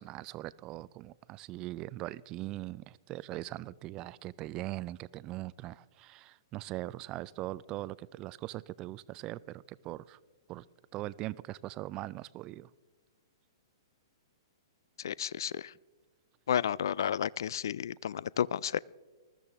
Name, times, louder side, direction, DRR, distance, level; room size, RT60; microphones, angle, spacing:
voice 1, 0.0-10.2 10.5-10.7 10.9-12.7, right 16 dB, 30° right, 20 dB, 0.3 m, -41 dB
voice 2, 15.0-15.7 16.5-18.8, left 9 dB, 60° left, 24 dB, 0.3 m, -32 dB
20.0 x 13.5 x 3.5 m, 1.3 s
figure-of-eight pair, 110°, 2 cm